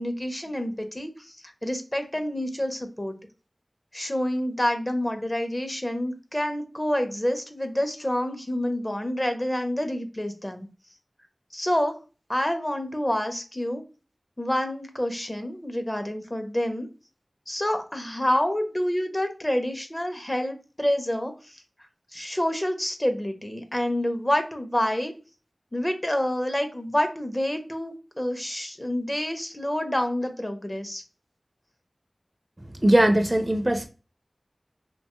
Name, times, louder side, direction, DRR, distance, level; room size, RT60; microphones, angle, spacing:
voice 1, 0.0-1.4 1.6-3.2 3.9-10.7 11.5-12.0 12.3-13.8 14.4-16.9 17.5-21.6 22.1-25.1 25.7-31.0, left 1 dB, 25° left, 0.5 m, -28 dB
voice 2, 32.8-33.9, right 1 dB, 30° right, 0.4 m, -20 dB
2.7 x 2.2 x 2.9 m
wide cardioid pair, 40°, 0 cm